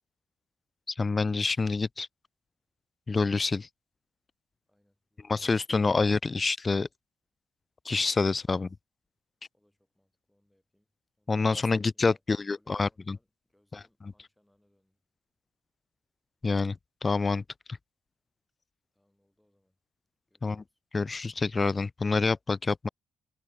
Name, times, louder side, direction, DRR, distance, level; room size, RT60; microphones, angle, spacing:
voice 1, 1.0-2.1 3.1-3.7 5.3-6.9 7.9-8.7 11.3-13.2 16.4-17.4 20.4-20.6 20.9-22.9, left 4 dB, 30° left, 0.3 m, -27 dB
voice 2, 4.7-5.7 8.5-8.8 9.5-10.9 11.2-15.0 18.9-19.8 20.3-20.8, left 1 dB, 5° left, 7.8 m, -72 dB
cardioid pair, 90°, 0 cm